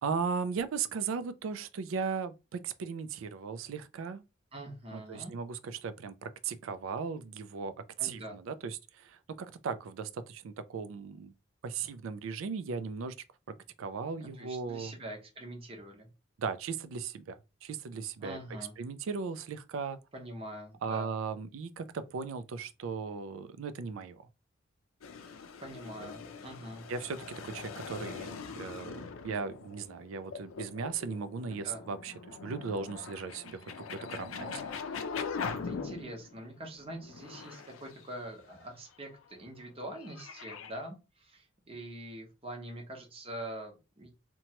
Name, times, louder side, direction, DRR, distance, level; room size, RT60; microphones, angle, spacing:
voice 1, 0.0-4.2 4.9-7.7 8.0-11.3 11.6-13.2 13.8-14.9 16.4-18.4 18.8-20.0 20.8-24.2 26.0-26.1 26.9-34.5, right 5 dB, 85° right, 0.4 m, -37 dB
voice 2, 4.5-5.3 8.0-8.4 14.4-16.1 18.2-18.7 20.1-21.1 25.6-26.8 31.5-31.8 34.4-34.9 35.5-44.1, right 1 dB, 30° right, 0.8 m, -44 dB
sound 1, 25.0-36.4 36.9-38.6 39.6-40.7, left 5 dB, 90° left, 0.4 m, -42 dB
2.9 x 2.2 x 2.8 m
head